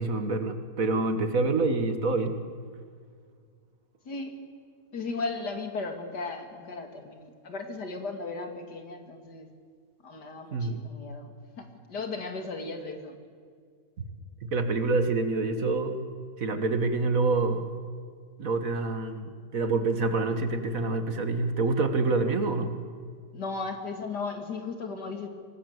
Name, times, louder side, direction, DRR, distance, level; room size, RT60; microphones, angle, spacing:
voice 1, 0.0-2.4 10.5-10.8 14.4-16.0 16.4-17.7 18.4-22.7, right 3 dB, 55° right, 8 dB, 1.9 m, -27 dB
voice 2, 4.9-9.5 10.0-13.2 23.3-25.3, left 3 dB, 75° left, 5 dB, 2.9 m, -36 dB
25.0 x 18.5 x 8.0 m, 2.1 s
omnidirectional pair, 1.8 m